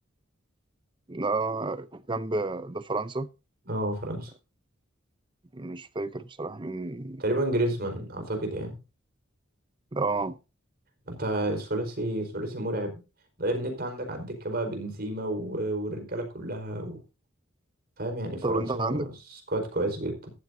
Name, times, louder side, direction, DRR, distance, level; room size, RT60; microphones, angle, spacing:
voice 1, 1.1-3.3 5.5-7.2 9.9-10.4 18.4-19.1, right 3 dB, 25° right, 0.7 m, -30 dB
voice 2, 3.7-4.3 7.2-8.8 11.1-12.9 13.4-17.0 18.0-20.3, right 1 dB, 50° right, 4.6 m, -31 dB
14.5 x 12.5 x 2.7 m
head